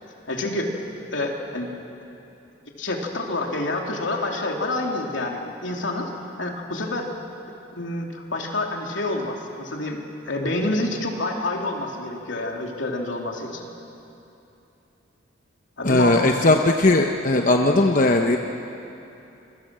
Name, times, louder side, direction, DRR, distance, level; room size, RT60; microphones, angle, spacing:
voice 1, 0.3-0.8 1.1-1.8 2.8-6.1 6.4-7.1 7.7-13.7 15.8-16.3, left 2 dB, 80° left, 1 dB, 3.1 m, -28 dB
voice 2, 15.8-18.4, left 2 dB, 45° left, 3 dB, 0.9 m, -18 dB
27.0 x 23.0 x 7.6 m, 2.9 s
head